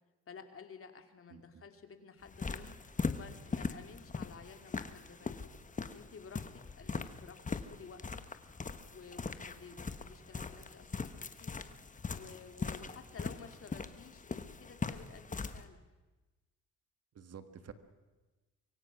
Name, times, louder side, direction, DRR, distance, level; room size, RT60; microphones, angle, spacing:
voice 1, 0.3-2.8 3.1-5.5 5.9-8.2 8.9-11.6 12.1-15.8, left 5 dB, 45° left, 6 dB, 2.7 m, -53 dB
voice 2, 1.3-1.6 6.9-7.1 17.1-17.7, right 7 dB, 55° right, 10 dB, 1.8 m, -51 dB
sound 1, 2.2-15.6, left 4 dB, 25° left, 1.3 m, -41 dB
24.5 x 23.5 x 6.1 m, 1.2 s
cardioid pair, 90°, 30 cm